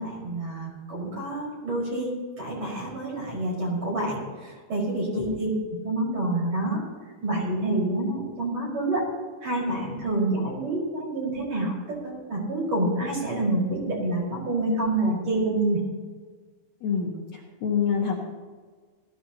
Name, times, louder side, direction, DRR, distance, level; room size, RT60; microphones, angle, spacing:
voice 1, 0.0-2.1 2.4-5.5 5.8-6.8 7.2-9.0 9.4-15.8, right 2 dB, 35° right, -5 dB, 5.8 m, -27 dB
voice 2, 16.8-18.2, left 6 dB, 75° left, -3 dB, 1.6 m, -27 dB
19.5 x 16.0 x 2.9 m, 1.5 s
omnidirectional pair, 5.7 m